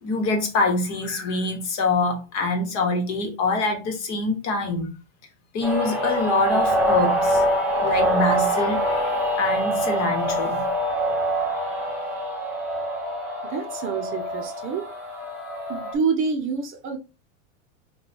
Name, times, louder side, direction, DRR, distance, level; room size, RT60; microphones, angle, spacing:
voice 1, 0.0-4.9 5.5-7.4 7.8-8.8 9.4-10.7, left 3 dB, 45° left, 1.2 m, -25 dB
sound 1, 5.6-15.9, right 1 dB, 5° right, 1.1 m, -25 dB
voice 2, 13.4-14.8 15.7-17.0, right 5 dB, 30° right, 0.6 m, -27 dB
3.0 x 2.3 x 4.2 m
supercardioid pair, 125°, 39 cm